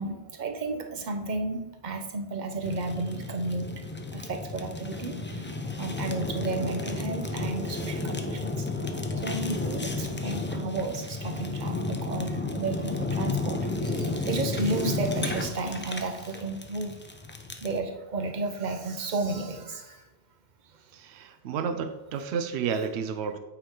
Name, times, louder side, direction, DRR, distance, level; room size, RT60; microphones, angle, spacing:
voice 1, 0.0-3.7 4.1-8.9 9.1-17.0 17.6-20.0, right 3 dB, 45° right, 5 dB, 1.0 m, -33 dB
Fire, 2.6-17.8, left 3 dB, 15° left, 0.4 m, -32 dB
voice 2, 20.9-23.4, right 6 dB, 80° right, 9 dB, 0.9 m, -31 dB
8.4 x 4.8 x 3.7 m, 1.0 s
omnidirectional pair, 1.1 m